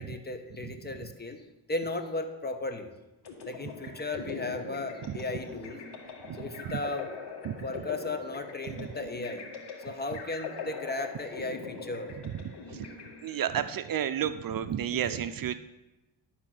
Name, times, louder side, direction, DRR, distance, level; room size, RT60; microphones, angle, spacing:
voice 1, 0.0-1.4 1.7-2.9 3.4-5.8 6.3-7.1 7.6-9.5 9.8-12.1 14.9-15.2, left 2 dB, 25° left, 7 dB, 1.1 m, -36 dB
sound 1, 3.2-13.7, left 5 dB, 70° left, 2.2 m, -42 dB
voice 2, 6.3-6.7 7.4-7.6 8.8-8.9 12.7-12.9 13.2-15.5, right 9 dB, 55° right, 11 dB, 0.6 m, -31 dB
11.5 x 4.4 x 7.6 m, 1.0 s
cardioid pair, 100°, 43 cm